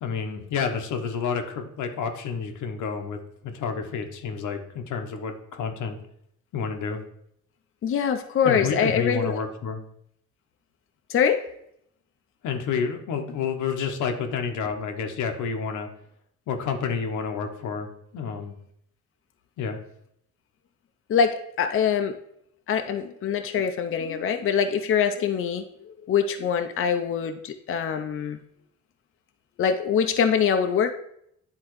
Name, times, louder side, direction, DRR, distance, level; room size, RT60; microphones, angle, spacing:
voice 1, 0.0-6.0 6.5-7.0 8.4-9.8 12.4-15.9 16.5-18.6 19.6-19.8, left 6 dB, 80° left, 5 dB, 0.9 m, -29 dB
voice 2, 7.8-9.4 11.1-11.4 21.1-22.2 22.7-28.4 29.6-30.9, left 7 dB, 45° left, 6 dB, 0.5 m, -24 dB
9.5 x 3.7 x 3.1 m, 0.73 s
cardioid pair, 90°, 30 cm